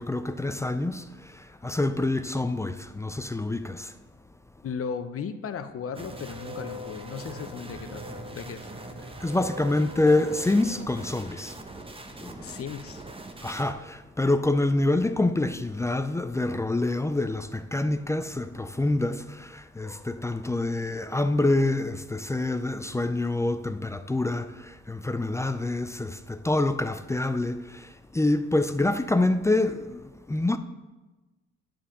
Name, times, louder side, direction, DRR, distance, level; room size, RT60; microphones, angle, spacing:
voice 1, 0.0-3.9 9.2-11.5 12.2-12.5 13.4-30.6, left 2 dB, 10° left, 0.3 m, -26 dB
voice 2, 4.6-8.7 12.4-13.0, left 6 dB, 50° left, 0.7 m, -36 dB
sound 1, 5.9-13.7, right 1 dB, 20° right, 0.9 m, -41 dB
10.0 x 7.5 x 3.8 m
cardioid pair, 90°, 30 cm